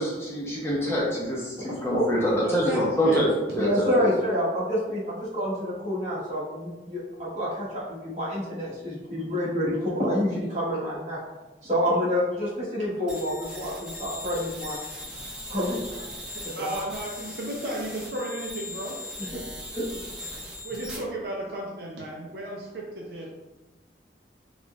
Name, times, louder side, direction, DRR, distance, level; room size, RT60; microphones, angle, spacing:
voice 1, 0.0-3.3 3.5-4.1, equal, 15° left, -5 dB, 0.6 m, -25 dB
voice 2, 1.6-2.1 3.6-11.2 11.6-14.8 15.5-16.1 16.6-16.7 19.7-19.9, equal, 40° right, -9 dB, 1.3 m, -28 dB
voice 3, 2.4-3.3 15.1-15.2 16.4-19.0 19.3-19.4 20.2-20.3 20.6-23.3, right 1 dB, 60° right, -1 dB, 0.4 m, -34 dB
sound 1, 13.1-21.0, left 1 dB, 5° right, 1.0 m, -39 dB
4.1 x 2.2 x 2.3 m, 1.1 s
head